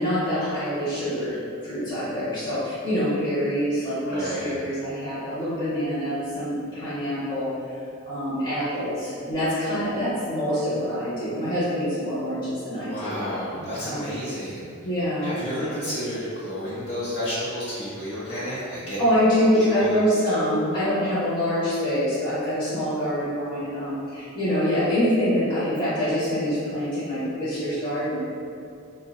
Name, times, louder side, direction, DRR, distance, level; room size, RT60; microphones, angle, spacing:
voice 1, 0.0-1.4 1.6-7.8 8.1-14.1 14.8-15.9 19.0-28.2, equal, 20° left, -14 dB, 0.7 m, -25 dB
voice 2, 4.1-4.5 12.9-14.7 15.2-19.0 19.3-20.0, equal, 90° left, -11 dB, 0.7 m, -31 dB
2.6 x 2.1 x 2.3 m, 2.4 s
head